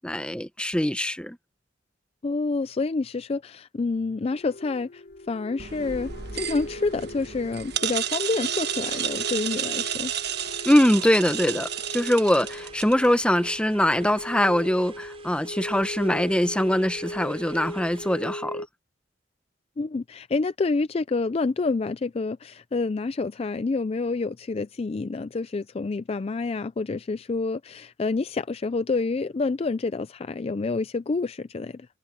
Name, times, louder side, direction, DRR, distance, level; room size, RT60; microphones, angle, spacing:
voice 1, 0.0-1.4 10.6-18.6, left 1 dB, 5° left, 1.0 m, -23 dB
voice 2, 2.2-10.1 19.8-31.9, left 3 dB, 30° left, 0.4 m, -28 dB
sound 1, 4.3-18.7, left 1 dB, 60° left, 1.6 m, -39 dB
sound 2, 5.6-13.1, right 9 dB, 55° right, 1.3 m, -31 dB
sound 3, 7.5-18.4, right 4 dB, 30° right, 4.9 m, -50 dB
head